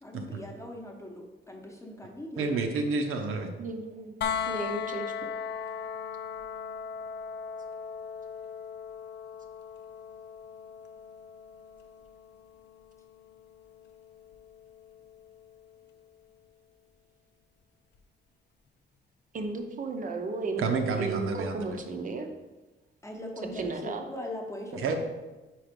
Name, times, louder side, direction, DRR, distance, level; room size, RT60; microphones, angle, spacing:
voice 1, 0.0-2.5 23.0-25.0, left 1 dB, 15° left, 1 dB, 0.8 m, -40 dB
voice 2, 2.4-3.5 20.6-21.8 24.7-25.0, right 4 dB, 80° right, 4 dB, 0.8 m, -30 dB
voice 3, 3.6-4.2 4.5-5.3 19.3-20.6 21.0-22.3 23.4-24.1, right 3 dB, 40° right, 5 dB, 0.7 m, -34 dB
sound 1, 4.2-16.0 17.9-18.0, left 7 dB, 55° left, 0.4 m, -39 dB
4.9 x 4.6 x 5.1 m, 1.1 s
wide cardioid pair, 160°, 21 cm